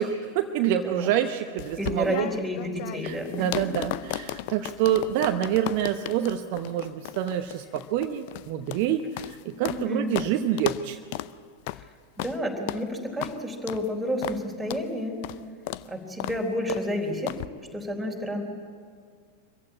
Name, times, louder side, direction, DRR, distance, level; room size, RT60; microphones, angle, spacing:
voice 1, 0.0-2.3 3.0-11.0, right 10 dB, 45° right, 7 dB, 0.9 m, -27 dB
sound 1, 1.6-9.8 10.1-10.3 10.6-10.8 11.1-11.3 11.7-11.8 12.2-12.4 12.7-12.8 13.2-13.3 13.7-13.9 14.2-14.4 14.7-14.8 15.2-15.4 15.7-15.9 16.2-16.4 16.7-16.9 17.3-17.5, left 17 dB, 45° left, 0.5 m, -34 dB
voice 2, 1.8-3.6 9.6-10.1 11.7-11.8 12.2-15.2 15.8-17.3 17.7-18.4, equal, ahead, -1 dB, 4.0 m, -30 dB
25.0 x 15.0 x 8.6 m, 2.1 s
figure-of-eight pair, 90°, 0 cm